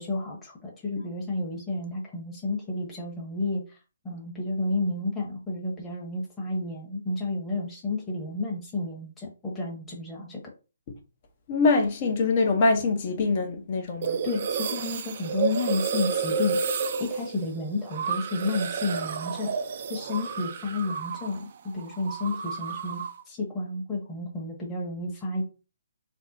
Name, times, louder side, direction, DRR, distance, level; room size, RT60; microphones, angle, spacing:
voice 1, 0.0-3.8 4.0-10.4 14.2-16.6 17.0-19.5 19.9-25.4, left 2 dB, 10° left, 0.9 m, -31 dB
voice 2, 11.5-14.2, left 3 dB, 35° left, 0.7 m, -24 dB
sound 1, 14.0-21.4 21.7-23.2, right 6 dB, 45° right, 0.4 m, -31 dB
3.4 x 2.1 x 4.0 m
figure-of-eight pair, 145°, 0 cm